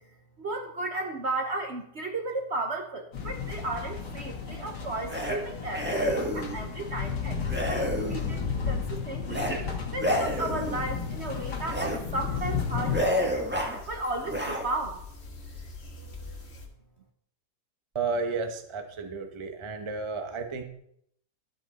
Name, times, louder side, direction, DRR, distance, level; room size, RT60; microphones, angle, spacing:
voice 1, 0.4-9.5 9.9-13.5 13.9-15.0, right 2 dB, 45° right, 4 dB, 1.0 m, -34 dB
sound 1, 3.1-13.0, left 6 dB, 75° left, 2.1 m, -33 dB
sound 2, 5.1-5.4 5.7-6.6 7.5-8.4 9.3-9.6 9.9-10.9 11.6-12.0 12.3-12.5 12.9-13.8 14.2-14.6, equal, 5° right, 1.4 m, -29 dB
sound 3, 10.3-16.7, left 4 dB, 40° left, 1.6 m, -45 dB
voice 2, 17.9-20.6, right 4 dB, 20° right, 5 dB, 0.8 m, -32 dB
12.5 x 8.2 x 4.2 m, 0.72 s
omnidirectional pair, 1.9 m